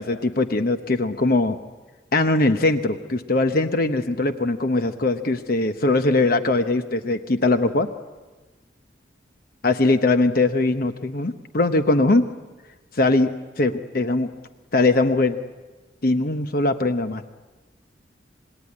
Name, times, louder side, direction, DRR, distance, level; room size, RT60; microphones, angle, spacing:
voice 1, 0.0-1.6 2.1-7.9 9.6-12.2 12.9-14.3 14.7-15.4 16.0-17.2, left 2 dB, 50° left, 8 dB, 0.9 m, -21 dB
27.0 x 20.5 x 9.6 m, 1.2 s
head